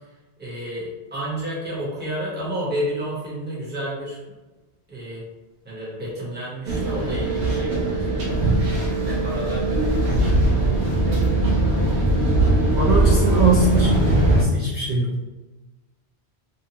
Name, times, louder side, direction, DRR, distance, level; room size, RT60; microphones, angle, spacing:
voice 1, 0.4-4.2 4.9-5.2 5.6-8.7 9.0-10.5, equal, 10° right, -7 dB, 0.8 m, -31 dB
sound 1, 6.7-14.4, right 2 dB, 80° right, 0.9 m, -20 dB
voice 2, 12.7-15.2, right 2 dB, 55° right, -8 dB, 0.6 m, -22 dB
2.8 x 2.2 x 2.8 m, 1.1 s
omnidirectional pair, 1.1 m